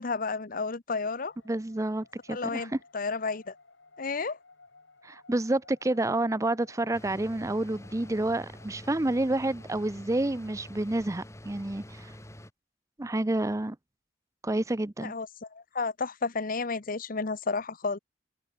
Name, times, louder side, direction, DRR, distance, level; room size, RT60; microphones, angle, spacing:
voice 1, 0.0-1.3 2.3-3.6 4.0-4.4 15.0-18.0, left 4 dB, 50° left, 1.0 m, -32 dB
sound 1, 1.3-10.8, left 3 dB, 75° left, 4.8 m, -58 dB
voice 2, 1.5-2.7 5.0-12.1 13.0-13.8 14.4-15.1, right 2 dB, 15° right, 0.6 m, -29 dB
sound 2, 6.9-12.5, left 1 dB, 15° left, 2.9 m, -47 dB
head